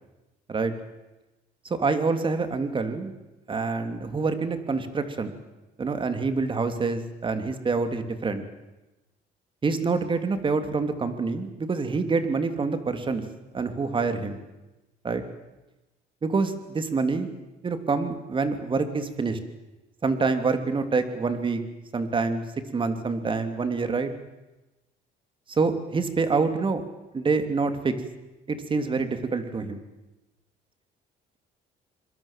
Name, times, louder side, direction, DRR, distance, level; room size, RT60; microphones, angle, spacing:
voice 1, 1.6-3.1 3.5-5.3 5.8-8.4 9.6-13.2 13.5-14.4 15.0-15.2 16.2-17.3 17.6-19.4 20.0-21.6 21.9-22.4 22.7-24.1 25.5-26.8 27.1-28.0 28.5-29.8, right 4 dB, 30° right, 9 dB, 3.1 m, -26 dB
27.0 x 22.5 x 7.6 m, 1.0 s
cardioid pair, 110°, 17 cm